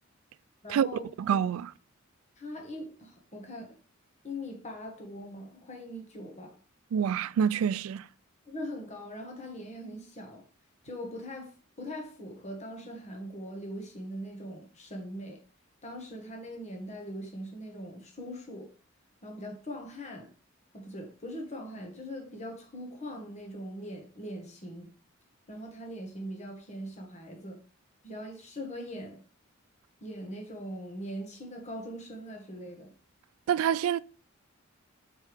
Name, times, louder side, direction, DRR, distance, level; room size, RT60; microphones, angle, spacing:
voice 1, 0.6-1.1 2.4-3.7 4.2-6.5 8.5-10.4 10.8-15.4 15.8-18.7 19.2-20.3 20.7-24.9 25.5-27.6 28.0-29.2 30.0-32.9, equal, 35° left, 1.2 m, -41 dB
voice 2, 1.2-1.7 6.9-8.0 33.5-34.0, right 8 dB, 80° right, 0.3 m, -26 dB
6.7 x 4.6 x 3.4 m
head